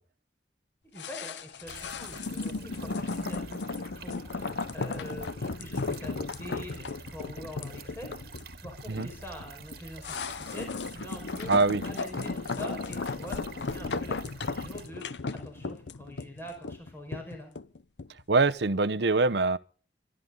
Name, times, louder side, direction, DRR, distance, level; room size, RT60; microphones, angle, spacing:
voice 1, 0.9-8.4 8.6-11.5 11.8-17.5, equal, 15° left, 5.0 m, -44 dB
sound 1, 1.0-18.2 18.5-18.6, left 3 dB, 85° left, 0.7 m, -35 dB
sound 2, 1.7-14.9, right 4 dB, 55° right, 1.9 m, -48 dB
voice 2, 11.5-11.8 18.3-19.6, right 3 dB, 70° right, 0.8 m, -24 dB
24.5 x 12.5 x 3.9 m
head